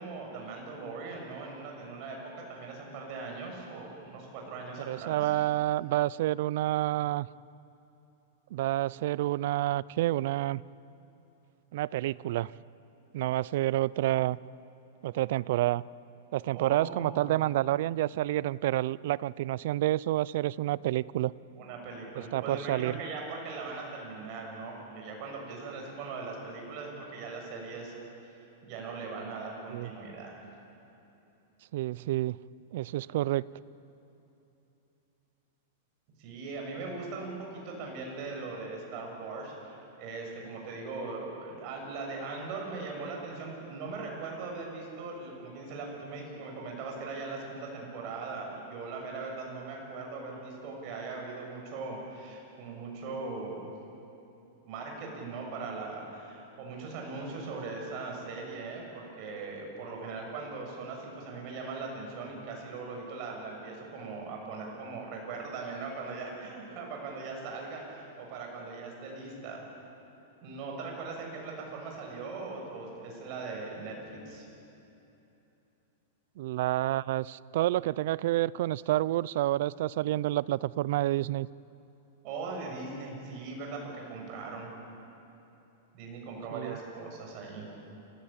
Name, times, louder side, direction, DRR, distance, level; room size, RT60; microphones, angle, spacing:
voice 1, 0.0-5.3 16.5-17.3 21.5-27.9 28.6-30.4 36.2-53.7 54.6-69.6 70.4-74.4 82.2-84.7 85.9-87.7, right 3 dB, 40° right, 0 dB, 6.9 m, -40 dB
voice 2, 4.9-7.3 8.5-10.6 11.7-12.5 13.1-14.4 15.0-15.8 16.3-21.3 22.3-23.0 29.7-29.9 31.7-32.4 32.7-33.4 76.4-81.5 86.5-86.8, right 15 dB, 60° right, 21 dB, 0.4 m, -29 dB
29.5 x 16.0 x 8.9 m, 2.9 s
supercardioid pair, 155°, 0 cm